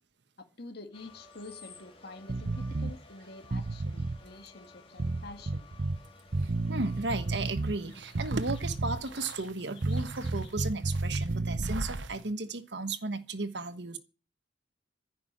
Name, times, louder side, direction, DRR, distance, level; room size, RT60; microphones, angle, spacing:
voice 1, 0.4-5.7, left 2 dB, 60° left, 1.9 m, -47 dB
sound 1, 0.9-10.7, left 4 dB, 30° left, 2.8 m, -55 dB
sound 2, 2.3-3.0 3.4-4.2 5.0-6.0 6.3-7.8 8.1-9.1 9.8-11.9, right 2 dB, 50° right, 0.7 m, -32 dB
voice 2, 6.4-14.0, right 3 dB, 70° right, 1.3 m, -35 dB
sound 3, 7.4-12.3, right 2 dB, 90° right, 1.0 m, -41 dB
15.0 x 6.0 x 8.8 m
head